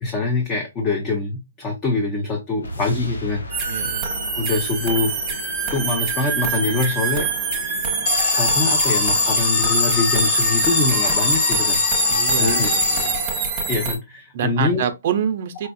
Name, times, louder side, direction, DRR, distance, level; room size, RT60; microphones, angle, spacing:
voice 1, 0.0-3.7 4.4-5.2 5.7-7.3 8.3-11.8 12.4-12.7 13.7-14.8, left 3 dB, 20° left, 0.8 m, -24 dB
sound 1, 2.6-8.2, right 1 dB, 75° left, 1.1 m, -36 dB
sound 2, 3.5-13.9, right 5 dB, 20° right, 1.0 m, -25 dB
voice 2, 3.7-4.0 12.1-13.2 14.3-15.7, right 8 dB, 45° right, 0.5 m, -26 dB
Alarm, 8.1-13.6, left 4 dB, 45° left, 1.2 m, -21 dB
4.2 x 2.4 x 2.3 m
hypercardioid pair, 140°, 0 cm